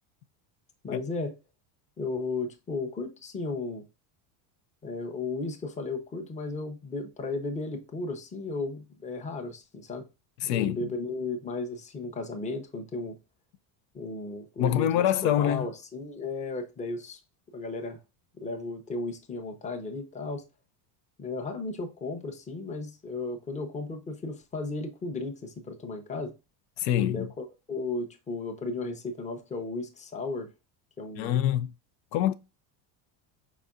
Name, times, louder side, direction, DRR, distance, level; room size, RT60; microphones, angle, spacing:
voice 1, 0.8-1.3 2.0-3.9 4.8-10.1 10.4-13.2 13.9-17.2 17.5-18.0 18.4-20.4 21.2-26.3 27.1-30.5 31.0-31.3, left 3 dB, 15° left, 0.7 m, -35 dB
voice 2, 10.4-10.9 14.6-15.7 26.8-27.2 31.2-31.7 32.1-32.3, left 11 dB, 75° left, 0.7 m, -25 dB
5.3 x 4.1 x 2.4 m
cardioid pair, 135°, 49 cm